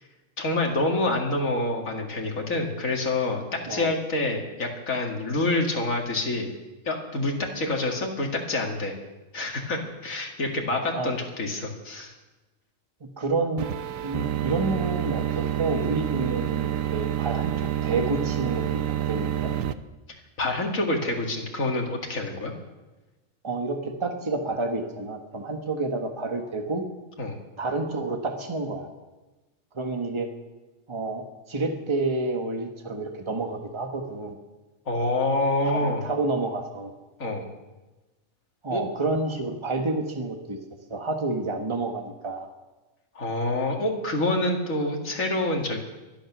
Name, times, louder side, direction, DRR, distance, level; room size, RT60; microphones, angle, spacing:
voice 1, 0.4-6.5 6.9-8.9 9.3-12.1 20.4-22.5 27.2-27.4 34.9-36.0 37.2-37.5 38.7-38.8 43.2-45.8, left 2 dB, 80° left, 1 dB, 2.6 m, -27 dB
voice 2, 13.0-13.7 14.0-17.5 17.8-19.5 23.4-26.8 27.6-28.9 29.7-30.3 30.9-34.3 35.7-36.9 38.6-40.6 40.9-42.5, right 3 dB, 20° right, 4 dB, 1.5 m, -29 dB
sound 1, 13.6-19.7, right 11 dB, 80° right, 1.1 m, -28 dB
23.5 x 9.1 x 6.2 m, 1.1 s
omnidirectional pair, 1.4 m